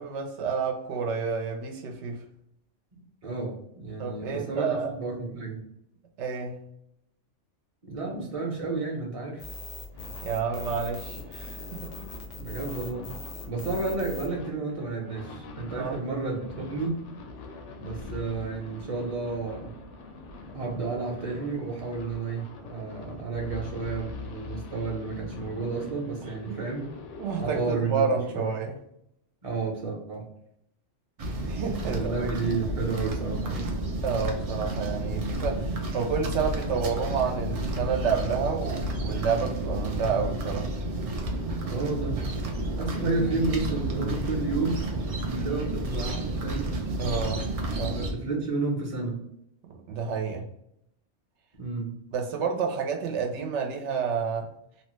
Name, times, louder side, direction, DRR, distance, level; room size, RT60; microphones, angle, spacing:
voice 1, 0.0-2.2 4.0-4.9 6.2-6.6 10.2-11.9 15.7-16.0 26.5-26.6 27.2-28.8 31.4-32.1 34.0-40.7 47.0-47.5 47.8-48.0 49.9-50.4 52.1-54.5, right 6 dB, 75° right, 2 dB, 0.9 m, -29 dB
voice 2, 2.9-5.6 7.8-9.5 12.4-13.1 13.5-17.0 17.8-19.7 20.5-26.9 27.4-28.5 29.4-30.3 31.8-33.7 41.6-42.2 42.7-44.8 45.1-46.7 47.9-49.2 51.6-51.9, right 3 dB, 35° right, -1 dB, 0.7 m, -31 dB
sound 1, 9.4-14.3, left 3 dB, 50° left, 0.4 m, -40 dB
sound 2, 9.9-27.8, left 3 dB, 80° left, 0.9 m, -43 dB
sound 3, 31.2-48.1, right 1 dB, 55° right, 0.4 m, -31 dB
2.9 x 2.1 x 3.0 m, 0.77 s
omnidirectional pair, 1.2 m